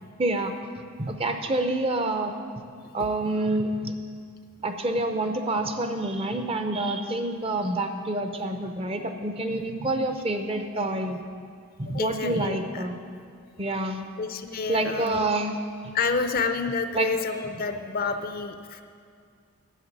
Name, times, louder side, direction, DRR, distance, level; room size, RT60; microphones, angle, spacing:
voice 1, 0.2-0.5 1.0-2.3 2.9-3.9 4.6-11.2 11.8-12.9 13.6-14.1 14.7-15.6 15.8-15.9 16.9-17.1, right 2 dB, 25° right, 6 dB, 0.6 m, -27 dB
voice 2, 11.9-12.8 14.2-15.3 15.9-18.8, left 4 dB, 40° left, 8 dB, 0.5 m, -29 dB
10.0 x 7.5 x 9.4 m, 2.2 s
head